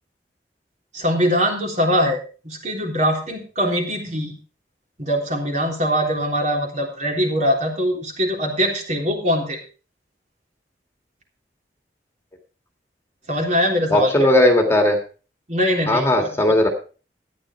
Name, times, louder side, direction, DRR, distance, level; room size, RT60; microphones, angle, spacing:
voice 1, 0.9-2.2 2.4-4.3 5.0-9.6 13.3-14.3 15.5-16.5, equal, 45° right, 1 dB, 3.5 m, -22 dB
voice 2, 13.9-15.0 15.9-16.7, left 1 dB, 15° left, 3 dB, 1.9 m, -16 dB
13.0 x 10.0 x 4.4 m, 0.36 s
head